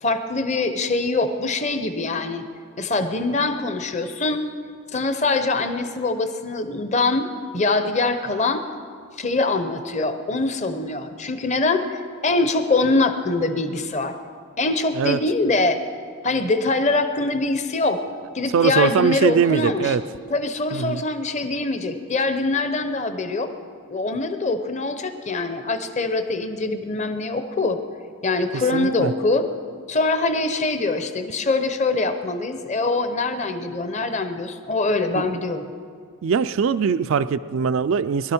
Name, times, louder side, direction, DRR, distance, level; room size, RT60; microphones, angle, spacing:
voice 1, 0.0-2.4 2.8-4.4 4.9-8.6 9.2-14.2 14.6-15.8 16.2-18.0 18.3-20.0 20.3-23.5 23.9-27.8 28.2-29.5 29.9-35.7, left 3 dB, 30° left, 8 dB, 0.8 m, -23 dB
voice 2, 18.5-20.0 20.7-21.0 28.7-29.1 35.1-35.3 36.2-38.3, right 6 dB, 60° right, 13 dB, 0.3 m, -21 dB
22.0 x 12.0 x 4.4 m, 2.1 s
head